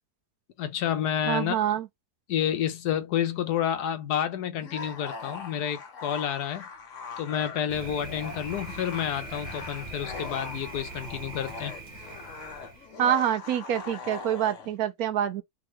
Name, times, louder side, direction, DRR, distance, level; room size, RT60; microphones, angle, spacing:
voice 1, 0.6-1.6 2.3-6.6 7.2-11.7, left 9 dB, 80° left, 1.3 m, -29 dB
voice 2, 1.2-1.9 13.0-15.4, right 10 dB, 75° right, 1.1 m, -26 dB
sound 1, 4.6-14.7, left 5 dB, 55° left, 1.3 m, -41 dB
Thunder, 7.7-13.0, right 3 dB, 35° right, 0.8 m, -41 dB
3.6 x 2.7 x 3.1 m
omnidirectional pair, 1.7 m